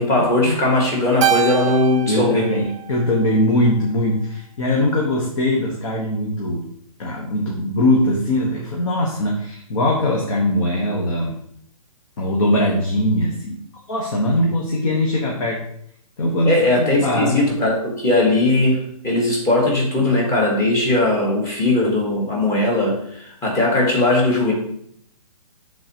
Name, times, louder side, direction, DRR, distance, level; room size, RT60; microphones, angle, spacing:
voice 1, 0.0-2.5 16.4-24.5, left 2 dB, 15° left, -1 dB, 1.6 m, -19 dB
Keyboard (musical), 1.2-3.7, right 10 dB, 55° right, 0.5 m, -25 dB
voice 2, 2.1-6.7 7.0-11.4 12.2-13.6 13.9-15.6 16.2-17.4, left 1 dB, 60° left, -2 dB, 1.5 m, -21 dB
11.5 x 4.0 x 3.0 m, 0.70 s
hypercardioid pair, 145°, 19 cm